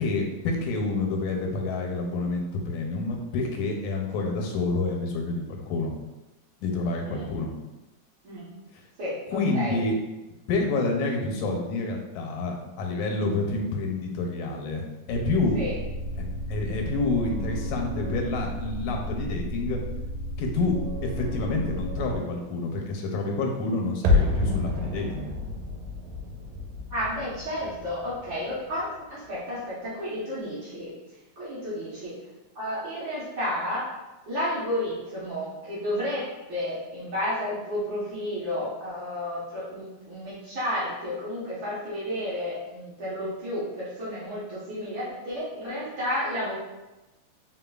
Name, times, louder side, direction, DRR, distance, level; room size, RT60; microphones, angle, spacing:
voice 1, 0.0-5.9 6.6-7.5 9.3-10.0 10.5-15.6 16.2-19.8 20.4-20.7 21.0-25.3, left 3 dB, 90° left, 2 dB, 2.1 m, -28 dB
voice 2, 9.0-9.8 15.5-15.7 26.9-30.9 31.4-32.1 32.5-33.9 34.3-46.5, left 1 dB, 55° right, -10 dB, 1.5 m, -32 dB
sound 1, 15.1-22.2, equal, 50° left, 1.7 m, -33 dB
sound 2, 24.0-29.0 29.2-29.3, left 2 dB, 90° right, 2.0 m, -28 dB
4.3 x 3.8 x 2.3 m, 1.1 s
omnidirectional pair, 3.3 m